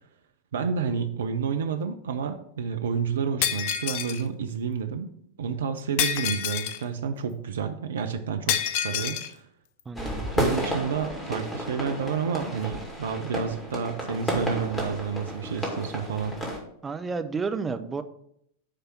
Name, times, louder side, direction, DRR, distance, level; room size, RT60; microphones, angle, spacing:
voice 1, 0.5-9.5 10.4-16.4, right 6 dB, 65° right, 7 dB, 0.6 m, -30 dB
Shatter, 3.4-4.2 6.0-6.8 8.5-9.3, left 9 dB, 45° left, 0.5 m, -27 dB
voice 2, 9.9-10.3 16.8-18.0, right 4 dB, 15° right, 8 dB, 0.6 m, -31 dB
sound 1, 10.0-16.6, equal, 15° left, 2.4 m, -31 dB
9.7 x 3.4 x 6.0 m, 0.72 s
figure-of-eight pair, 90°, 0 cm